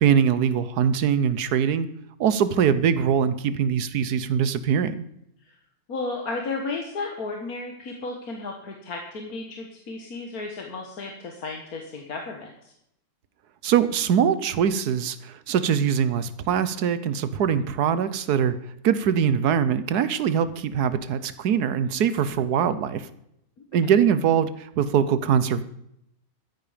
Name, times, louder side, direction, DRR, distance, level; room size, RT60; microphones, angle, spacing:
voice 1, 0.0-1.9 2.2-4.9 13.6-18.5 18.8-23.1 23.7-25.6, right 8 dB, 90° right, 14 dB, 1.4 m, -22 dB
voice 2, 5.9-12.7 23.8-23.9, left 3 dB, 70° left, 2 dB, 2.0 m, -33 dB
13.5 x 10.5 x 5.1 m, 0.76 s
omnidirectional pair, 1.6 m